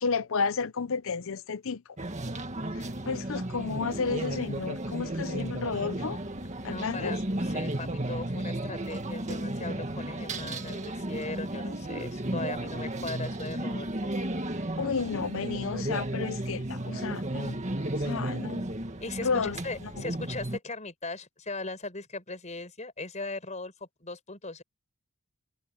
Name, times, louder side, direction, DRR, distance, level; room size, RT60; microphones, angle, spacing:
voice 1, 0.0-1.8 3.1-6.2 6.6-7.2 14.8-17.6 18.0-18.7 19.2-19.6, left 5 dB, 60° left, 0.6 m, -31 dB
sound 1, 2.0-20.6, right 1 dB, 30° right, 1.9 m, -34 dB
voice 2, 6.6-14.1 19.0-24.6, left 3 dB, 30° left, 5.0 m, -39 dB
head